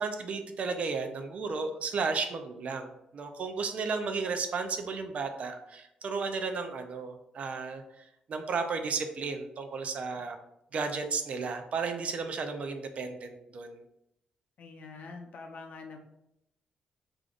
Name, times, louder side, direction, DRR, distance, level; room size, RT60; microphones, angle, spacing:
voice 1, 0.0-10.4 10.7-13.8, right 4 dB, 55° right, 6 dB, 0.4 m, -34 dB
voice 2, 14.6-16.0, left 4 dB, 65° left, 4 dB, 0.6 m, -45 dB
4.9 x 2.5 x 2.4 m, 0.84 s
cardioid pair, 110°, 3 cm